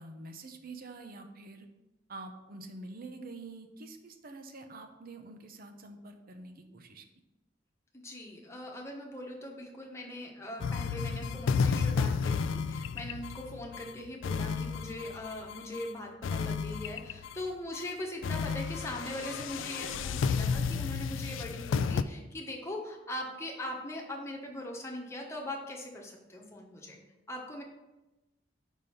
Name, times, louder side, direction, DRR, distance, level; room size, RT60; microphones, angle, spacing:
voice 1, 0.0-1.7 2.1-7.0, right 2 dB, 50° right, 6 dB, 0.8 m, -46 dB
voice 2, 7.9-27.0 27.3-27.6, left 1 dB, 15° left, -1 dB, 1.2 m, -41 dB
sound 1, 10.6-15.9 16.2-17.4 17.7-17.9 18.2-22.0, left 5 dB, 90° left, 0.3 m, -32 dB
5.4 x 5.1 x 5.7 m, 1.0 s
head